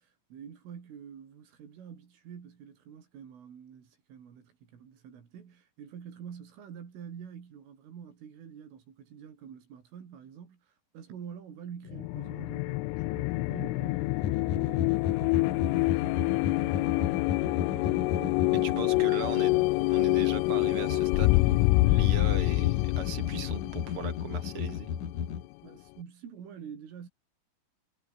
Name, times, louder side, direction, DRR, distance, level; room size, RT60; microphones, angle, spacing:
voice 1, 0.0-19.3 25.6-27.1, right 8 dB, 80° right, 6.7 m, -47 dB
sound 1, 11.9-25.4, left 26 dB, 90° left, 3.1 m, -27 dB
sound 2, 14.2-25.5, left 8 dB, 50° left, 3.4 m, -35 dB
voice 2, 18.5-24.9, right 5 dB, 30° right, 5.1 m, -39 dB
omnidirectional pair, 5.6 m